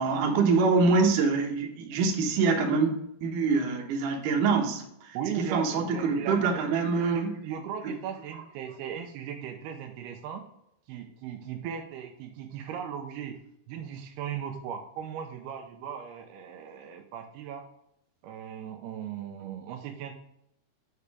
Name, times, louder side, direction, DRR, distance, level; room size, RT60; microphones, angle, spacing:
voice 1, 0.0-2.9 3.2-7.3, right 4 dB, 65° right, 2 dB, 2.4 m, -25 dB
voice 2, 5.1-6.9 7.1-10.4 10.9-13.4 13.7-17.6 18.2-20.1, right 8 dB, 85° right, 4 dB, 2.6 m, -38 dB
6.8 x 5.6 x 4.8 m, 0.77 s
omnidirectional pair, 4.8 m